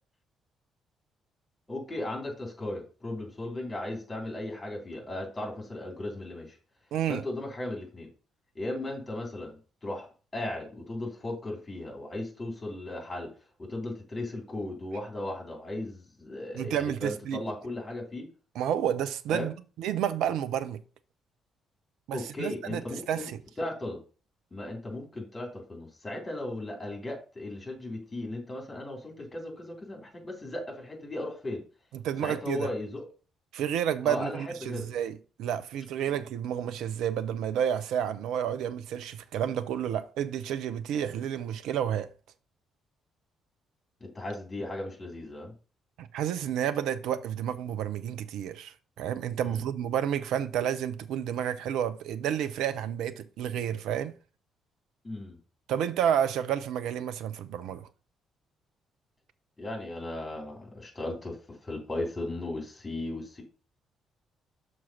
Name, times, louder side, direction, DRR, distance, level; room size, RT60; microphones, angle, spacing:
voice 1, 1.7-6.6 7.1-8.1 8.6-13.3 13.6-18.3 19.3-19.5 22.1-23.3 23.6-24.0 24.5-31.6 32.2-33.0 34.0-34.9 44.0-45.5 49.4-49.6 55.0-55.4 59.6-63.4, left 1 dB, 20° left, 3.6 m, -36 dB
voice 2, 6.9-7.2 16.5-17.4 18.5-20.8 22.1-22.8 23.1-23.4 31.9-32.7 33.5-42.1 46.0-54.2 55.7-57.9, right 9 dB, 60° right, 0.6 m, -30 dB
6.2 x 4.6 x 5.6 m
figure-of-eight pair, 45°, 0 cm